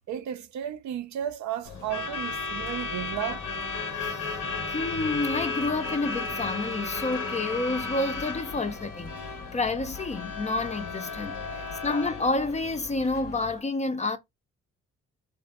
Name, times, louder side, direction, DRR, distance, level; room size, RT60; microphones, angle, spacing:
voice 1, 0.1-3.5 11.6-11.8, right 10 dB, 65° right, 0.5 m, -34 dB
Truck / Alarm, 1.6-13.6, left 4 dB, 75° left, 0.8 m, -34 dB
voice 2, 3.9-9.1 9.5-14.2, left 2 dB, 20° left, 0.4 m, -29 dB
2.6 x 2.5 x 2.2 m
supercardioid pair, 50°, 31 cm